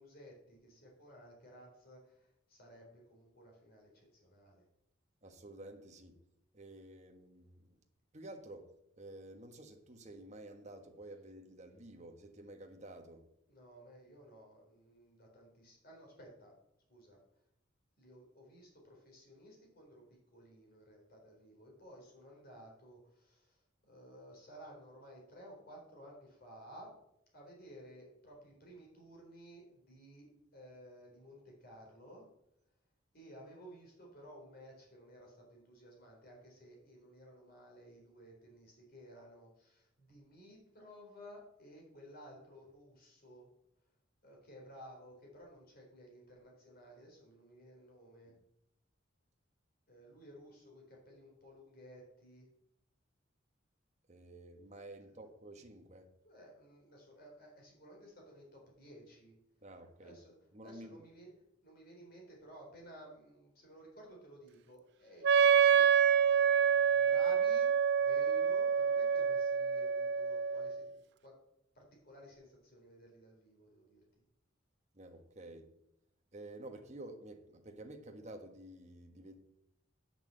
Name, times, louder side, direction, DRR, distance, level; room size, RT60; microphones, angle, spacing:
voice 1, 0.0-4.7 13.5-16.5 16.9-17.2 18.0-20.0 20.3-27.0 27.3-32.3 33.1-43.5 44.2-48.3 49.9-52.5 56.2-59.3 60.0-60.4 60.6-61.3 61.6-67.7 68.0-71.3 71.7-74.0, equal, 50° left, 4.0 m, -56 dB
voice 2, 5.2-6.2 6.5-7.8 8.1-8.6 9.0-13.2 48.3-48.4 54.1-56.1 59.6-60.2 60.5-61.0 74.9-75.6 76.3-79.4, right 1 dB, 35° right, 1.3 m, -51 dB
Wind instrument woodwind instrument, 65.2-70.9, right 7 dB, 60° right, 0.4 m, -27 dB
8.9 x 5.9 x 7.6 m
head